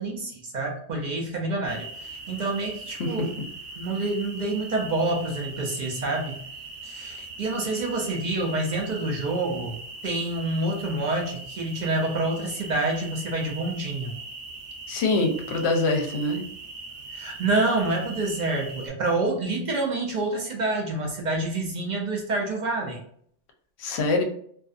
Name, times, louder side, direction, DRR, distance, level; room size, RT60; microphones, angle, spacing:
voice 1, 0.0-3.4 3.8-6.4 6.8-9.8 10.0-14.1 17.1-23.0, right 2 dB, 50° right, 0 dB, 0.5 m, -27 dB
sound 1, 1.7-18.9, right 3 dB, 75° right, 1.0 m, -40 dB
voice 2, 14.9-16.4 23.8-24.2, left 2 dB, 70° left, 4 dB, 0.8 m, -24 dB
2.5 x 2.5 x 2.3 m, 0.62 s
omnidirectional pair, 1.2 m